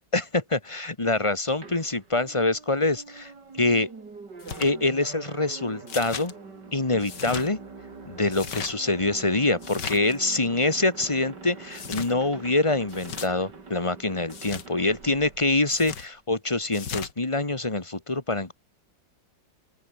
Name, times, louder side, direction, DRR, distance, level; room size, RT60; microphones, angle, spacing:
voice 1, 0.1-3.3 3.6-3.9 4.6-6.3 6.7-7.6 8.1-18.5, left 2 dB, 15° left, 1.8 m, -25 dB
sound 1, 1.6-16.2, right 4 dB, 65° right, 4.0 m, -44 dB
sound 2, 4.4-4.7 5.9-6.3 7.0-7.5 8.3-8.7 9.6-10.2 11.7-12.1 12.9-13.3 14.3-14.7 15.7-16.1 16.7-17.1, left 7 dB, 65° left, 2.4 m, -36 dB
open air
omnidirectional pair, 2.0 m